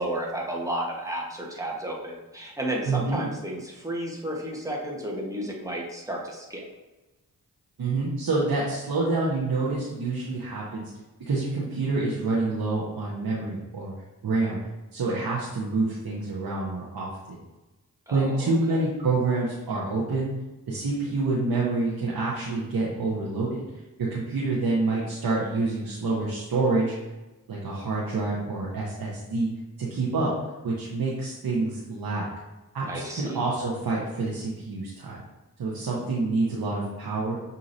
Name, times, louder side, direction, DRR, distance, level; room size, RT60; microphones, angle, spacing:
voice 1, 0.0-6.6 18.1-18.8 32.9-33.4, right 1 dB, 10° right, -2 dB, 1.2 m, -32 dB
voice 2, 2.8-3.2 7.8-10.8 11.3-13.9 14.2-14.6 14.9-17.4 18.1-20.3 20.7-23.6 24.1-26.9 27.5-29.5 29.8-30.3 30.6-32.3 32.7-35.2 35.6-37.3, right 3 dB, 75° right, -5 dB, 0.9 m, -27 dB
6.0 x 2.7 x 2.6 m, 1.1 s
cardioid pair, 45°, 37 cm